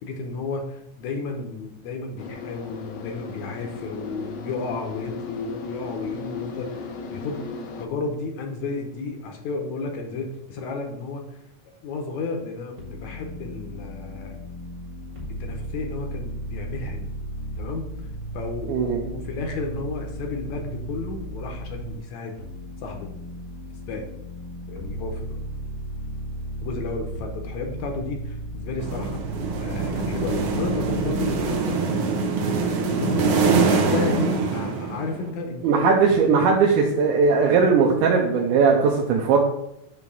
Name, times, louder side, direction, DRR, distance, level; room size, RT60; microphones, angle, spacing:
voice 1, 0.0-7.4 7.8-11.3 11.8-14.4 15.4-17.1 17.6-17.8 18.3-22.4 22.8-23.1 23.9-24.0 24.7-25.3 26.6-29.2 29.6-31.8 32.6-33.3 33.6-35.9, left 3 dB, 75° left, 3 dB, 1.9 m, -32 dB
sound 1, 2.2-7.9, left 4 dB, 90° left, 2.3 m, -36 dB
sound 2, 12.8-22.0 22.4-31.6, right 1 dB, 35° right, 1.3 m, -35 dB
voice 2, 18.7-19.0 35.6-39.4, right 5 dB, 85° right, -1 dB, 2.2 m, -19 dB
sound 3, 28.8-35.3, right 4 dB, 70° right, 1.4 m, -24 dB
6.6 x 3.2 x 5.4 m, 0.80 s
omnidirectional pair, 3.6 m